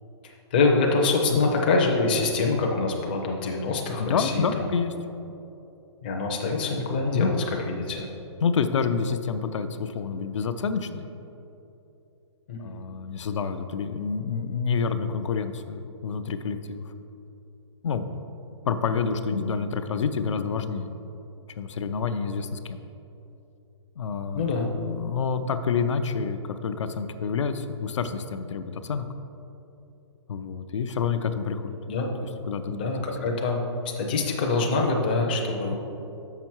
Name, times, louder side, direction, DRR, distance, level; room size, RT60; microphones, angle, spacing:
voice 1, 0.5-4.6 6.0-7.3 7.7-8.1 12.5-12.6 19.3-19.4 24.3-24.7 31.9-32.1 32.7-33.6 34.0-35.7, left 3 dB, 20° left, 1 dB, 0.4 m, -25 dB
voice 2, 4.0-4.9 7.1-7.3 8.4-11.1 12.6-16.8 17.8-18.1 18.6-20.9 21.5-22.8 24.0-24.4 24.7-29.0 30.3-31.8 32.2-32.8, left 5 dB, 90° left, 9 dB, 0.5 m, -28 dB
6.3 x 5.8 x 4.5 m, 2.9 s
hypercardioid pair, 180°, 15 cm